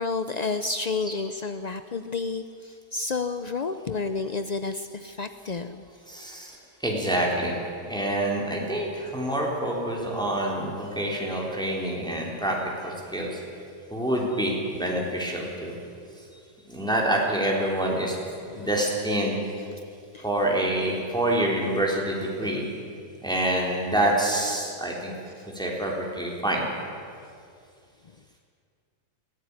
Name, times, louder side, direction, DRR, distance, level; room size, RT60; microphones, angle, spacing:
voice 1, 0.0-5.8 13.2-13.3 18.5-18.7 20.1-20.3 22.4-22.6 25.4-25.5, left 4 dB, 65° left, 10 dB, 0.4 m, -31 dB
voice 2, 6.1-6.6 6.8-7.5 7.9-12.6 12.8-13.3 13.9-15.8 16.7-18.2 18.6-19.4 20.2-22.6 23.2-25.1 25.6-26.6, right 1 dB, ahead, -2 dB, 3.6 m, -26 dB
22.0 x 15.5 x 9.7 m, 2.3 s
omnidirectional pair, 1.7 m